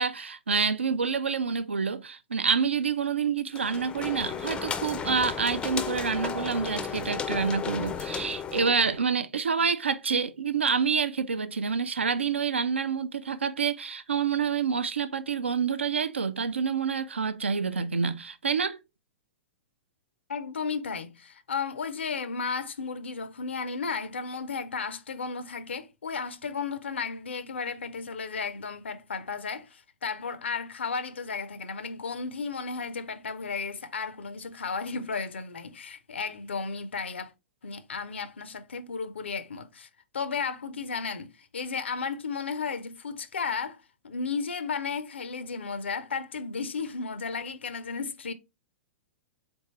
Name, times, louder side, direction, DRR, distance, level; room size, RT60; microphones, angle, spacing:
voice 1, 0.0-18.8, right 5 dB, 75° right, 0.4 m, -27 dB
sound 1, 3.5-9.0, left 6 dB, 15° left, 0.4 m, -34 dB
voice 2, 20.3-37.3 37.6-39.9 40.1-43.8 44.0-48.3, left 5 dB, 70° left, 0.5 m, -34 dB
3.8 x 3.5 x 3.0 m
figure-of-eight pair, 105°, 6 cm